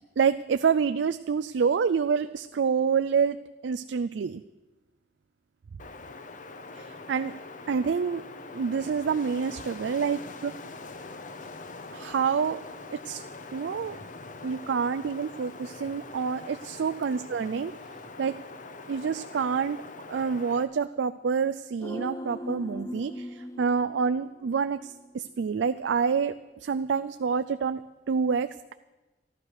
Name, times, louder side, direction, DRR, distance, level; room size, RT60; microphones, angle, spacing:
voice 1, 0.2-3.4 3.6-4.4 6.7-7.3 7.7-8.2 8.5-10.6 11.9-12.6 12.9-13.2 13.5-14.0 14.4-17.7 18.2-18.3 18.9-19.8 20.1-27.8 28.1-28.7, right 6 dB, 80° right, 10 dB, 0.4 m, -27 dB
Wind, 5.8-20.6, left 3 dB, 45° left, 0.9 m, -43 dB
sound 1, 21.8-25.1 25.4-25.5, left 1 dB, 20° left, 0.6 m, -39 dB
13.0 x 11.5 x 6.5 m, 1.1 s
head